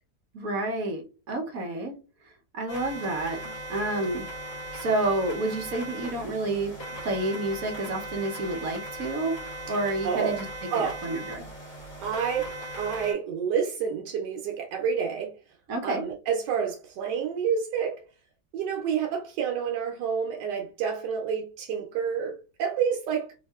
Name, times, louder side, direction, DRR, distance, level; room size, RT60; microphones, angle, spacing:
voice 1, 0.3-1.0 1.3-1.9 2.5-3.4 3.7-4.2 4.7-6.7 7.0-9.4 9.7-10.4 10.7-11.5 15.7-16.0, right 2 dB, 60° right, 1.2 m, -29 dB
sound 1, 2.7-13.1, right 1 dB, 75° left, 2.9 m, -38 dB
voice 2, 10.0-10.4 10.7-11.1 12.0-15.4 15.8-18.0 18.5-23.3, right 7 dB, 90° right, 1.2 m, -29 dB
4.7 x 2.6 x 2.2 m
omnidirectional pair, 1.8 m